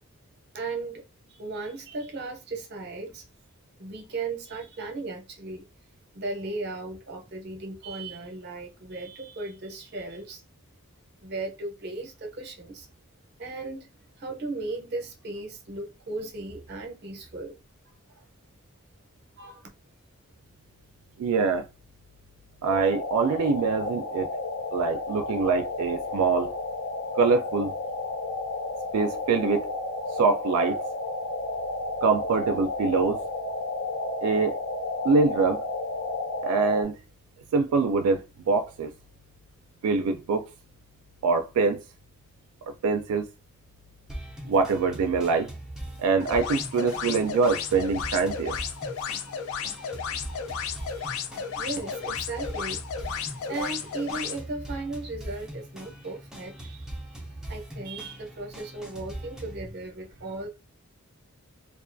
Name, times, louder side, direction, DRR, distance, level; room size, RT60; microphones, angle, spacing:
voice 1, 0.5-1.0 1.3-3.2 3.8-5.6 6.1-10.4 11.2-12.9 13.4-13.9 14.2-17.6 18.1-18.2 19.4-19.7 50.7-51.1 51.5-60.5, right 3 dB, 50° right, 0.6 m, -36 dB
voice 2, 21.2-21.7 22.6-24.3 24.7-26.5 27.2-27.7 28.9-29.7 30.1-30.8 32.0-33.2 34.2-34.6 35.0-35.6 36.4-37.0 37.5-38.9 39.8-40.5 41.2-41.8 42.8-43.3 44.4-45.5 46.0-48.6, right 4 dB, 85° right, 0.3 m, -24 dB
sound 1, 22.7-36.8, left 2 dB, 85° left, 0.7 m, -32 dB
sound 2, 44.1-59.7, right 1 dB, 5° right, 0.4 m, -41 dB
sound 3, 46.2-54.4, left 6 dB, 70° left, 0.3 m, -34 dB
2.4 x 2.3 x 2.5 m
head